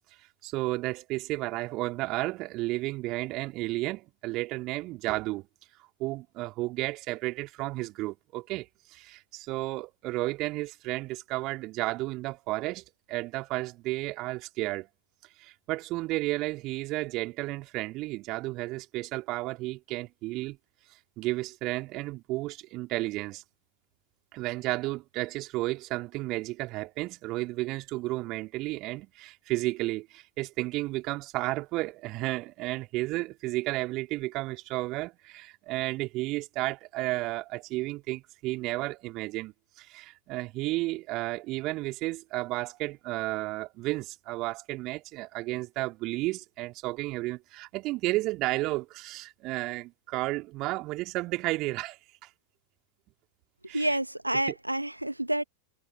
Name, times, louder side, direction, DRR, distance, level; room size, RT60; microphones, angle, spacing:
voice 1, 0.4-5.5 6.0-14.9 15.4-20.6 21.2-23.4 24.3-52.3 53.7-54.0, right 20 dB, 40° right, 2.9 m, -32 dB
voice 2, 53.7-55.4, right 1 dB, 85° right, 1.4 m, -28 dB
figure-of-eight pair, 90°, 0 cm